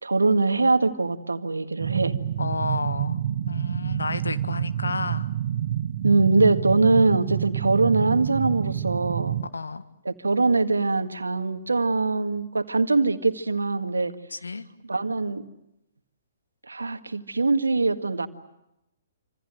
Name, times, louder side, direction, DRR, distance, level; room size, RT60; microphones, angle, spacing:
voice 1, 0.0-2.2 6.0-9.4 10.1-14.1 14.8-15.4 16.7-18.3, right 3 dB, 80° right, 9 dB, 1.7 m, -22 dB
sound 1, 1.8-9.5, right 10 dB, 55° right, 1.0 m, -28 dB
voice 2, 2.4-3.2 3.5-5.3 9.5-9.8 14.3-14.6, left 4 dB, 80° left, 11 dB, 1.7 m, -31 dB
27.5 x 27.0 x 7.7 m, 0.86 s
figure-of-eight pair, 120°, 0 cm